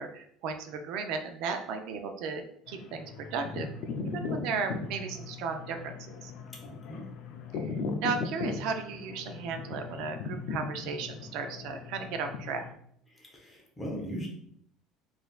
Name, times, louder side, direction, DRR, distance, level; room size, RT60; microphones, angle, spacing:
voice 1, 0.0-3.7 4.1-5.9 6.2-6.3 7.5-7.7 8.0-12.7, right 5 dB, 65° right, 6 dB, 0.4 m, -35 dB
sound 1, 2.7-12.7, left 4 dB, 60° left, 0.4 m, -38 dB
voice 2, 13.1-14.3, equal, 15° left, -1 dB, 0.8 m, -38 dB
4.0 x 2.6 x 2.3 m, 0.67 s
cardioid pair, 150°, 0 cm